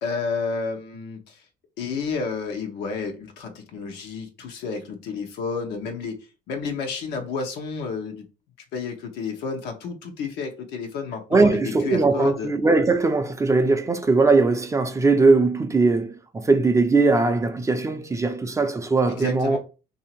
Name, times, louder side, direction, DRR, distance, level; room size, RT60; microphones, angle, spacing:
voice 1, 0.0-1.4 1.8-6.2 6.5-8.2 8.7-12.5 19.1-19.6, left 4 dB, 85° left, 0.9 m, -30 dB
voice 2, 11.3-19.6, right 3 dB, 20° right, 0.4 m, -20 dB
2.9 x 2.7 x 4.3 m
cardioid pair, 110°, 17 cm